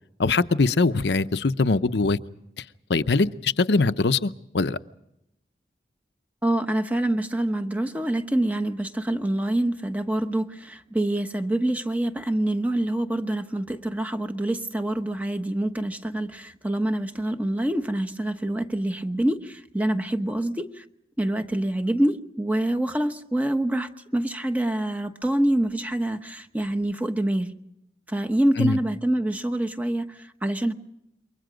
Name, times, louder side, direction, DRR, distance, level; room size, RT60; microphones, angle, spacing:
voice 1, 0.2-2.2 2.6-2.7 2.9-4.8 28.6-28.8, left 3 dB, 80° left, 0.8 m, -22 dB
voice 2, 6.4-20.8 21.2-27.5 28.1-30.7, right 1 dB, 10° right, 1.0 m, -26 dB
28.0 x 23.5 x 5.1 m
head